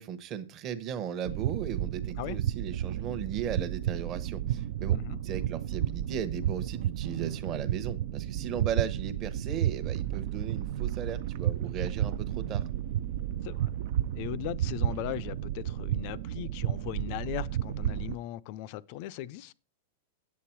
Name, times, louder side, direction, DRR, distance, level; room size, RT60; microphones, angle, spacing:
voice 1, 0.0-5.0 5.2-12.6, right 8 dB, 25° right, 0.9 m, -36 dB
sound 1, 1.3-18.2, right 11 dB, 50° right, 0.4 m, -32 dB
voice 2, 14.1-19.5, left 14 dB, 40° left, 0.5 m, -38 dB
8.5 x 8.3 x 4.5 m
supercardioid pair, 165°, 0 cm